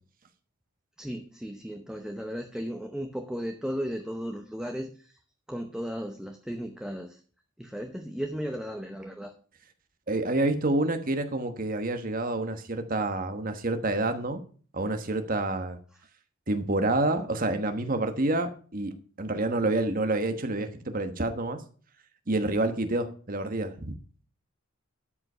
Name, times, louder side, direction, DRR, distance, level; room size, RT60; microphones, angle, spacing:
voice 1, 1.0-5.2 5.5-7.2 7.6-9.3, equal, 5° right, 4 dB, 0.8 m, -35 dB
voice 2, 10.1-14.4 14.7-15.8 16.5-21.6 22.3-23.9, right 2 dB, 40° right, 8 dB, 1.2 m, -28 dB
12.5 x 5.3 x 5.5 m, 0.42 s
head